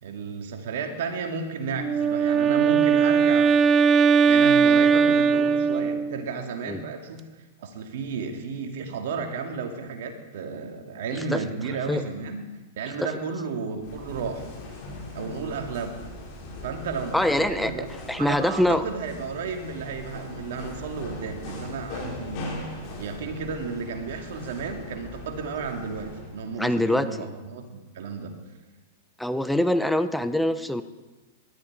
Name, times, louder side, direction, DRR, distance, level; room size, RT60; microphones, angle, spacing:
voice 1, 0.0-3.6 4.3-7.3 7.6-12.5 12.8-14.5 15.1-16.1 16.6-17.9 18.2-22.7 23.0-28.4, right 5 dB, 60° right, 4 dB, 2.4 m, -33 dB
Wind instrument woodwind instrument, 1.8-6.3, right 6 dB, 30° right, 0.7 m, -19 dB
sound 1, 13.8-26.4, left 2 dB, 45° left, 5.8 m, -40 dB
voice 2, 17.1-17.7 18.1-18.8 26.6-27.3 29.2-30.8, left 1 dB, ahead, 11 dB, 0.8 m, -24 dB
19.5 x 12.0 x 5.0 m, 1.2 s
hypercardioid pair, 105°, 0 cm